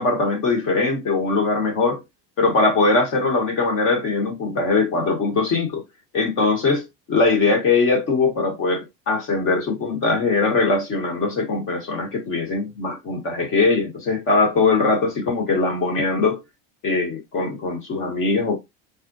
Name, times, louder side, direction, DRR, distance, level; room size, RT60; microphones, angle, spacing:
voice 1, 0.0-2.0 2.4-5.8 6.1-16.4 16.8-18.6, left 3 dB, 45° left, 1.6 m, -21 dB
4.3 x 4.2 x 2.7 m
cardioid pair, 160°, 30 cm